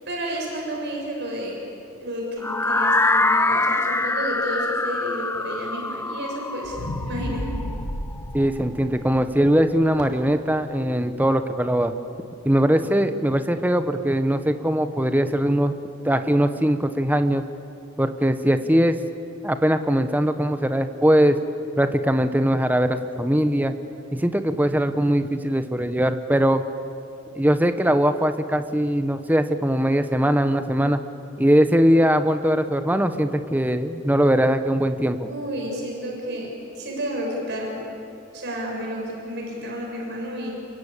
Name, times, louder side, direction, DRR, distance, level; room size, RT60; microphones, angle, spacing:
voice 1, 0.1-1.6 2.0-7.6 35.3-37.8 38.3-40.5, equal, 55° right, -1 dB, 6.9 m, -31 dB
sound 1, 2.4-8.3, left 2 dB, 10° left, 0.5 m, -24 dB
sound 2, 6.6-10.9 11.4-11.5, equal, 65° left, 2.3 m, -33 dB
voice 2, 8.3-11.9 12.4-15.7 16.0-17.4 18.0-19.0 19.4-21.4 21.8-23.7 24.1-26.7 27.3-31.0 31.4-35.3, equal, 10° right, 9 dB, 1.1 m, -21 dB
29.0 x 23.5 x 8.5 m, 2.6 s
head